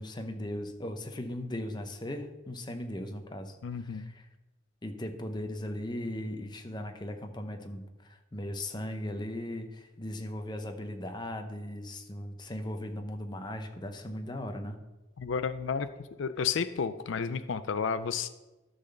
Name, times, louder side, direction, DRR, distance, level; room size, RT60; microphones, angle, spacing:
voice 1, 0.0-3.6 3.8-4.2 4.8-7.8 8.1-14.8, left 1 dB, 20° left, 6 dB, 0.8 m, -38 dB
voice 2, 3.6-4.1 15.2-15.9 16.2-18.3, left 6 dB, 65° left, 12 dB, 0.4 m, -31 dB
12.0 x 4.0 x 6.6 m, 1.1 s
head